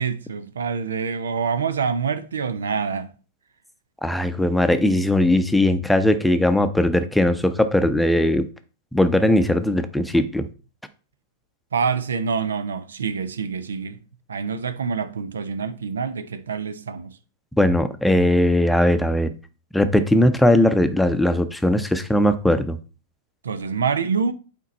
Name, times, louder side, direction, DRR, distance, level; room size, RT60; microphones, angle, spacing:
voice 1, 0.0-3.1 11.7-14.0 14.3-17.2 23.4-24.3, right 6 dB, 75° right, 0.7 m, -26 dB
voice 2, 4.0-8.5 8.9-10.5 17.6-19.3 19.7-22.8, left 1 dB, 5° left, 0.7 m, -19 dB
8.4 x 4.4 x 4.1 m
figure-of-eight pair, 95°, 0 cm